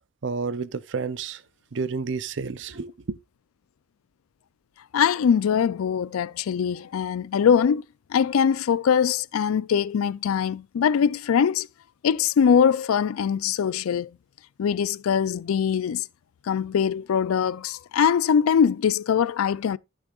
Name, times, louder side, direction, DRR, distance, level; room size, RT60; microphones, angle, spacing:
voice 1, 0.2-1.4 1.7-3.2, right 4 dB, 60° right, 0.5 m, -30 dB
voice 2, 4.9-7.8 8.1-11.7 12.0-14.1 14.6-16.1 16.5-19.8, left 7 dB, 85° left, 0.4 m, -22 dB
13.5 x 6.2 x 2.4 m
head